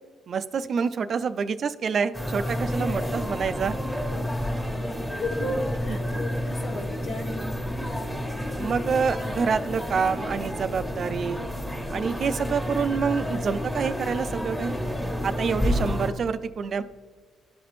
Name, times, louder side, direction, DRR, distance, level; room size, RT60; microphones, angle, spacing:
voice 1, 0.3-3.8 8.6-11.4 11.9-14.8 15.2-16.8, right 6 dB, 50° right, 12 dB, 0.4 m, -27 dB
sound 1, 2.1-16.1, equal, 5° left, 1.3 m, -30 dB
voice 2, 5.1-7.5, left 1 dB, 70° left, -1 dB, 1.7 m, -33 dB
12.0 x 4.1 x 3.1 m, 1.5 s
cardioid pair, 90°, 0 cm